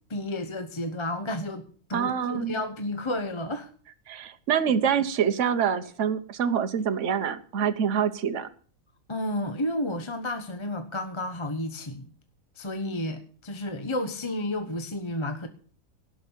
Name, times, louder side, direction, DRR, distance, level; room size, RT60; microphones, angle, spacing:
voice 1, 0.1-3.7 9.1-12.1 12.5-15.5, left 1 dB, 20° left, 1.1 m, -31 dB
voice 2, 1.9-2.6 4.1-8.5, right 8 dB, 60° right, 1.3 m, -26 dB
17.5 x 6.4 x 8.5 m
omnidirectional pair, 1.5 m